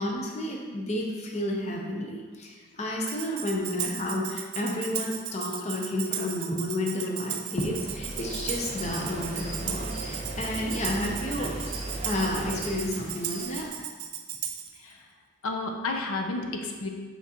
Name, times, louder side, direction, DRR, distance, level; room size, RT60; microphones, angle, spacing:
voice 1, 0.0-11.6 12.0-13.7, left 1 dB, 30° left, 0 dB, 0.6 m, -31 dB
Tambourine, 3.1-14.8, right 10 dB, 85° right, 0.5 m, -36 dB
sound 1, 7.5-12.8, right 1 dB, 30° right, 0.4 m, -37 dB
sound 2, 8.1-13.7, right 1 dB, 10° left, 1.1 m, -44 dB
voice 2, 15.4-16.9, left 3 dB, 85° left, 3 dB, 0.6 m, -32 dB
5.9 x 5.8 x 2.9 m, 1.5 s
head